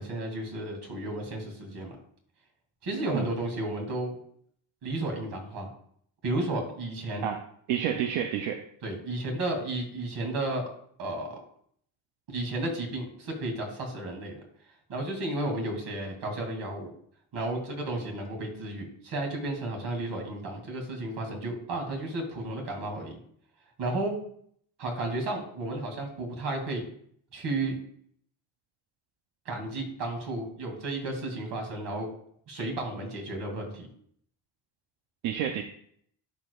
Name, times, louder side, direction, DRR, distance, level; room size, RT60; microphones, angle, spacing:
voice 1, 0.0-2.0 2.8-4.2 4.8-5.7 6.2-7.3 8.8-10.6 11.0-11.4 12.3-14.4 14.9-16.9 17.3-23.2 23.8-24.2 24.8-26.8 27.3-27.8 29.5-32.1 32.5-33.9, right 2 dB, 60° right, 2 dB, 2.5 m, -33 dB
voice 2, 7.7-8.6 35.2-35.6, right 9 dB, 90° right, 5 dB, 0.7 m, -29 dB
11.5 x 5.0 x 2.3 m, 0.64 s
cardioid pair, 95°, 46 cm